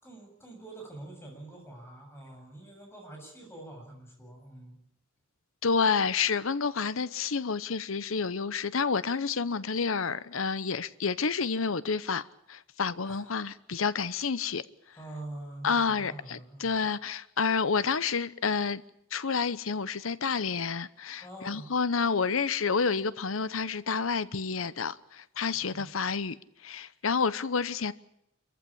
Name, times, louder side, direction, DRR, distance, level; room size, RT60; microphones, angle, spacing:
voice 1, 0.0-4.8 13.0-13.3 14.9-16.8 21.2-21.7 25.5-25.9, right 2 dB, 15° left, 7.4 m, -45 dB
voice 2, 5.6-14.6 15.6-18.8 19.1-26.4 26.6-27.9, left 5 dB, 85° left, 0.9 m, -29 dB
27.0 x 15.0 x 8.6 m
head